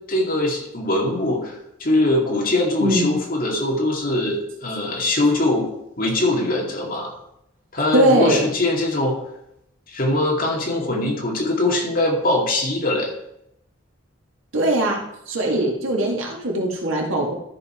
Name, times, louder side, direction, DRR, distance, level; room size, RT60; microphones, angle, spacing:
voice 1, 0.1-5.7 6.0-7.1 7.7-9.2 9.9-13.1, left 2 dB, 45° left, -1 dB, 2.3 m, -22 dB
voice 2, 2.8-3.2 7.9-8.5 14.5-17.3, right 1 dB, 85° right, -1 dB, 2.2 m, -20 dB
13.0 x 5.7 x 4.5 m, 0.79 s
head